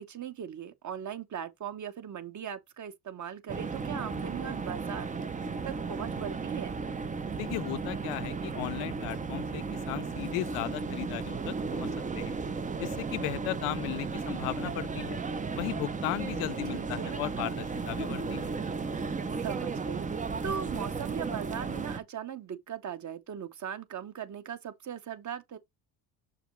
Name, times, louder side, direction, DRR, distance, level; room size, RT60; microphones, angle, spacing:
voice 1, 0.0-5.1 5.4-6.8 16.7-17.2 19.4-25.6, right 8 dB, 35° right, 0.9 m, -39 dB
sound 1, 3.5-22.0, right 4 dB, 15° right, 0.5 m, -35 dB
voice 2, 7.4-11.9 12.1-12.4 12.8-15.2 15.5-18.5, left 18 dB, 90° left, 0.6 m, -36 dB
6.6 x 4.9 x 3.1 m
cardioid pair, 115°, 49 cm